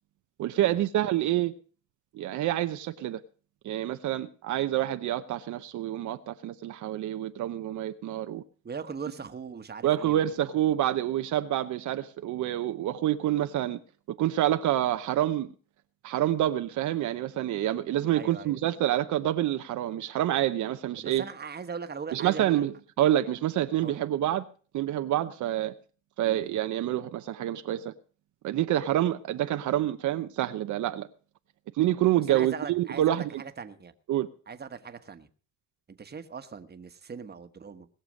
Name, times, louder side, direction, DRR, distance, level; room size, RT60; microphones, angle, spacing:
voice 1, 0.4-1.5 2.1-3.2 3.6-8.4 9.8-13.8 14.2-15.5 16.0-21.2 22.1-24.4 24.7-25.7 26.2-27.9 28.4-31.1 31.8-33.3 34.1-34.3, right 13 dB, 75° right, 0.8 m, -27 dB
voice 2, 8.6-10.3 18.1-18.6 21.0-22.6 23.0-23.1 23.8-24.0 26.2-26.4 32.3-33.9 34.5-35.3 35.9-37.9, right 5 dB, 35° right, 1.3 m, -40 dB
19.5 x 6.8 x 6.4 m
cardioid pair, 90°, 30 cm